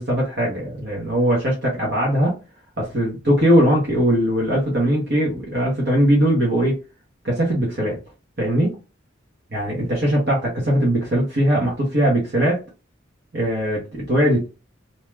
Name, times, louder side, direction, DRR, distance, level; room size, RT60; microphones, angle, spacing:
voice 1, 0.0-2.3 2.8-6.8 7.2-8.0 8.4-8.7 9.5-12.6 13.3-14.5, equal, 55° right, -3 dB, 1.1 m, -20 dB
2.8 x 2.3 x 3.2 m, 0.30 s
head